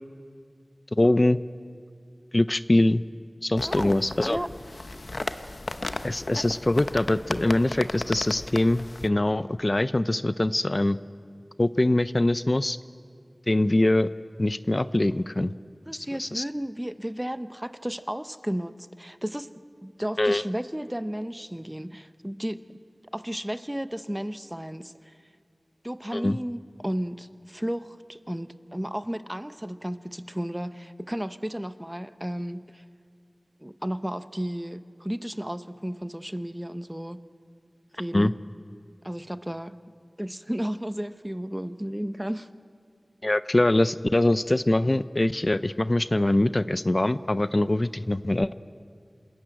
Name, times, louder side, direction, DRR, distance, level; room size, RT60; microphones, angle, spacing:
voice 1, 1.0-1.4 2.3-3.0 3.4-4.4 6.0-11.0 11.6-12.8 13.5-14.1 14.4-15.5 16.2-16.4 20.2-20.4 26.1-26.4 38.1-38.3 43.2-48.5, left 1 dB, 40° left, 14 dB, 0.5 m, -23 dB
sound 1, 3.6-9.1, left 2 dB, 70° left, 0.8 m, -35 dB
voice 2, 3.6-4.5 15.9-19.5 19.8-22.6 23.1-25.2 25.8-32.8 33.6-37.2 37.9-38.4 39.0-39.8 40.2-42.5, equal, 15° right, 11 dB, 0.8 m, -33 dB
27.5 x 14.0 x 9.1 m, 2.1 s
wide cardioid pair, 50°, 0 cm